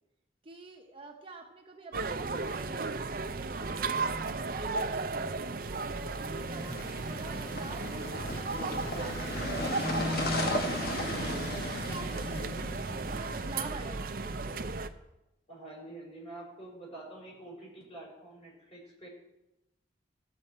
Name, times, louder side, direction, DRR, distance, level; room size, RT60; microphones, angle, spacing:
voice 1, 0.4-2.9 3.5-4.0 4.4-5.4 5.9-14.5, right 2 dB, 30° right, 1 dB, 0.9 m, -46 dB
sound 1, 1.9-14.9, right 3 dB, 50° right, 0.6 m, -35 dB
voice 2, 6.1-6.5 15.5-19.1, right 2 dB, 35° left, -4 dB, 5.0 m, -47 dB
sound 2, 6.5-13.5, left 1 dB, 55° left, 1.3 m, -35 dB
15.0 x 7.7 x 4.4 m, 0.93 s
head